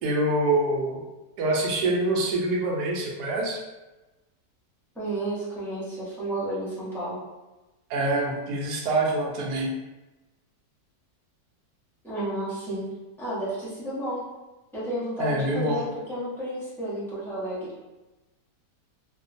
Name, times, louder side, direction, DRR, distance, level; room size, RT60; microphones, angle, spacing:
voice 1, 0.0-1.0 1.4-3.6 7.9-9.8 15.2-15.8, right 2 dB, 75° right, -1 dB, 1.1 m, -25 dB
voice 2, 5.0-7.2 12.0-12.8 13.2-14.2 14.7-17.7, right 1 dB, 5° left, -11 dB, 0.4 m, -31 dB
2.8 x 2.1 x 2.5 m, 1.1 s
omnidirectional pair, 1.9 m